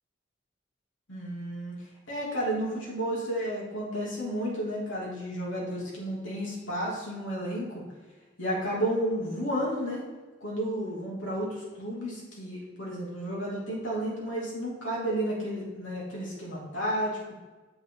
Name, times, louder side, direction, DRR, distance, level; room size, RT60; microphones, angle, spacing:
voice 1, 1.1-1.8 2.1-7.8 8.4-10.0 10.4-17.2, equal, 85° left, -4 dB, 2.8 m, -32 dB
8.8 x 7.7 x 3.9 m, 1.3 s
head